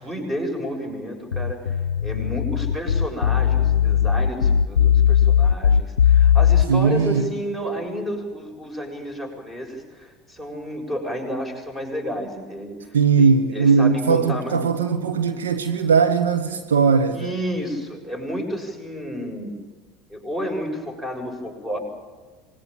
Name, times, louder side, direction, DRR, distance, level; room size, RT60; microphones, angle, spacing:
voice 1, 0.0-14.6 17.1-19.5 20.1-21.8, equal, 20° right, 7.5 m, -31 dB
sound 1, 1.3-6.7, left 8 dB, 70° left, 0.7 m, -18 dB
voice 2, 6.7-7.3 12.9-17.3, right 5 dB, 70° right, 1.3 m, -19 dB
26.5 x 21.0 x 9.1 m
figure-of-eight pair, 70°, 0 cm